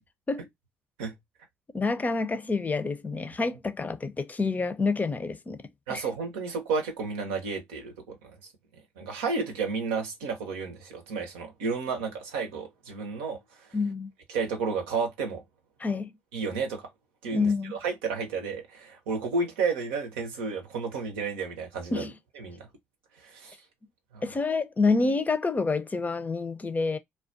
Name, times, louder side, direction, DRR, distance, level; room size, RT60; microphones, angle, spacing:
voice 1, 1.7-6.1 13.7-14.1 15.8-16.1 17.3-17.8 21.9-22.1 24.2-27.0, left 3 dB, 25° left, 0.5 m, -28 dB
voice 2, 5.9-8.3 9.0-13.7 14.3-15.4 16.3-16.9 17.2-22.0 22.4-22.7 23.2-23.5 24.1-24.2, right 4 dB, 85° right, 0.7 m, -32 dB
2.3 x 2.2 x 2.5 m
hypercardioid pair, 50°, 6 cm